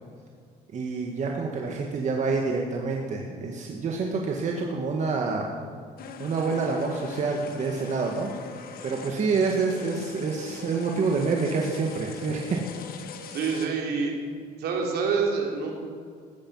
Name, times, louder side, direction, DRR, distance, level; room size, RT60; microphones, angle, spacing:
voice 1, 0.7-5.5 6.2-8.3 8.8-12.6, right 4 dB, 45° right, 0 dB, 1.8 m, -27 dB
sound 1, 6.0-13.7, left 5 dB, 60° left, 1.5 m, -42 dB
voice 2, 13.3-14.2 14.6-15.8, right 5 dB, 70° right, 0 dB, 3.6 m, -27 dB
15.5 x 12.5 x 5.7 m, 2.1 s
cardioid pair, 110°, 17 cm